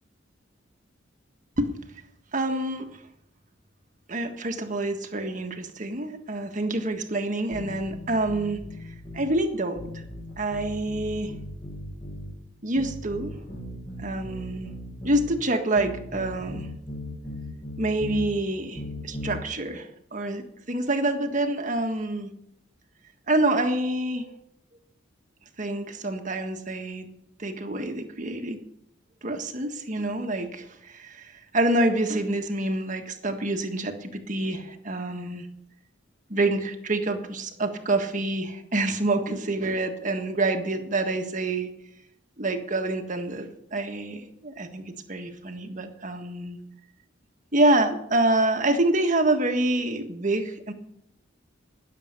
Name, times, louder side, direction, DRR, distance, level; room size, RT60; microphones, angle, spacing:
voice 1, 2.3-2.9 4.1-8.6 9.1-10.0 10.4-11.3 12.6-13.3 14.0-14.7 15.0-16.7 17.8-22.3 23.3-24.3 25.6-27.1 27.4-28.6 29.2-35.5 36.3-41.7 42.4-46.6 47.5-50.7, right 2 dB, 40° right, 5 dB, 1.6 m, -27 dB
sound 1, 7.5-9.3 9.8-12.4 12.8-15.3 15.8-18.3 18.8-19.4, left 1 dB, 35° left, 7.1 m, -38 dB
20.0 x 7.6 x 6.7 m, 0.79 s
head